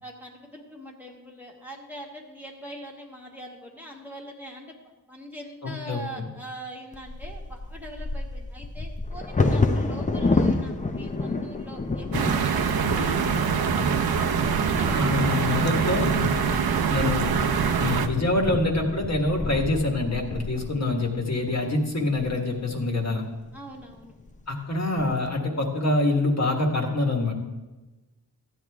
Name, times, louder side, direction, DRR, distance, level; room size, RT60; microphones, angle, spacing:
voice 1, 0.0-14.2 14.7-15.0 15.3-15.6 16.5-17.2 23.5-24.2, right 1 dB, 5° right, -2 dB, 1.4 m, -42 dB
voice 2, 5.6-6.3 14.9-16.3 16.9-17.3 17.8-23.2 24.5-27.3, left 2 dB, 45° left, 1 dB, 1.6 m, -25 dB
Bird vocalization bird call bird song / Wind / Thunder, 6.9-22.8 23.5-23.6 23.9-24.3 24.8-25.3, left 3 dB, 20° left, 0.6 m, -30 dB
sound 1, 12.1-18.1, right 6 dB, 70° right, 0.8 m, -24 dB
14.5 x 9.4 x 3.6 m, 1.1 s
wide cardioid pair, 140°, 38 cm